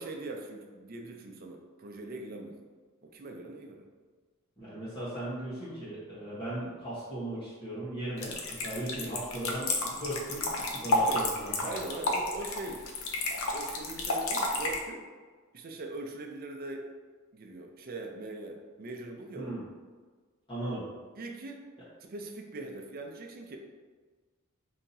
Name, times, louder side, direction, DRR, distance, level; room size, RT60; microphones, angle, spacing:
voice 1, 0.0-2.6 3.0-3.9 10.9-11.2 11.6-12.9 13.5-15.1 15.5-16.9 17.3-19.5 21.2-21.6 22.0-23.6, right 2 dB, 45° right, 2 dB, 0.5 m, -41 dB
voice 2, 4.6-11.7 19.3-19.7 20.5-20.9, right 1 dB, 25° left, -12 dB, 1.1 m, -37 dB
sound 1, 8.2-14.8, left 2 dB, 75° left, 0.6 m, -31 dB
5.5 x 2.8 x 2.7 m, 1.4 s
head